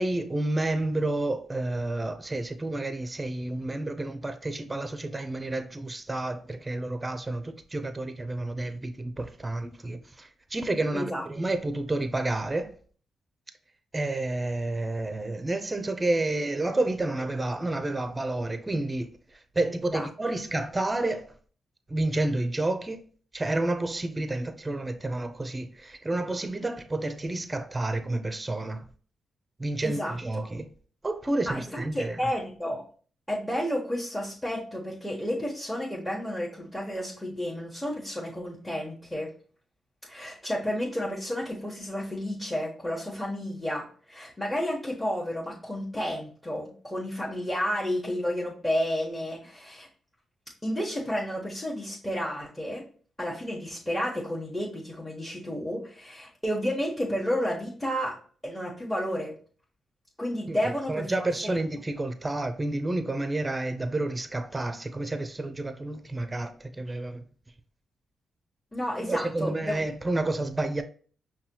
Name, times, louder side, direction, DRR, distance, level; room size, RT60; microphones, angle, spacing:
voice 1, 0.0-12.7 13.9-21.3 21.9-23.0 23.3-28.8 29.6-30.7 31.0-32.2 60.5-60.6 60.9-67.2 69.0-70.8, right 2 dB, 25° right, 0.5 m, -30 dB
voice 2, 29.8-30.1 31.5-32.8 33.3-39.3 40.1-49.9 50.6-52.8 53.2-58.2 58.4-59.3 60.2-61.1 61.4-61.6 68.7-69.8, equal, 10° left, 1.2 m, -31 dB
5.4 x 2.3 x 2.9 m
hypercardioid pair, 45°, 0 cm